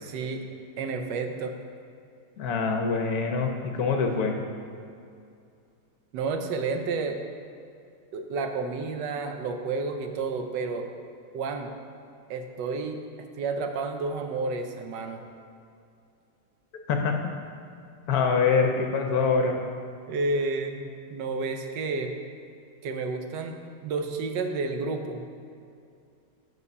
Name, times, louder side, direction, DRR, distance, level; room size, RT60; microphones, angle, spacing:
voice 1, 0.0-0.5 0.8-1.5 6.1-7.2 8.1-10.9 11.3-11.7 12.3-13.0 13.4-15.2 20.1-22.1 22.8-25.2, right 3 dB, 75° right, 5 dB, 1.3 m, -30 dB
voice 2, 2.4-4.4 16.9-17.1 18.1-19.6, left 5 dB, 65° left, 3 dB, 1.0 m, -24 dB
8.0 x 5.6 x 5.3 m, 2.4 s
omnidirectional pair, 2.0 m